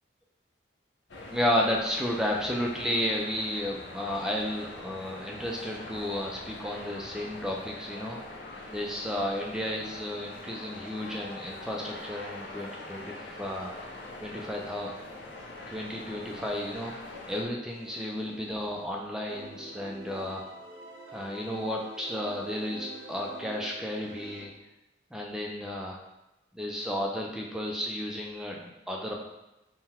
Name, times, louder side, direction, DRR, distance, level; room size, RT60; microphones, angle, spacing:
sound 1, 1.1-17.4, left 2 dB, 70° left, 0.6 m, -43 dB
voice 1, 1.3-13.7 14.2-14.9 15.7-16.9 17.3-20.4 21.1-24.5 25.1-26.0 26.5-29.1, left 1 dB, 5° right, -1 dB, 0.3 m, -33 dB
sound 2, 17.7-19.0 19.3-24.4, right 2 dB, 80° right, 0.7 m, -46 dB
3.8 x 2.1 x 4.2 m, 0.96 s
head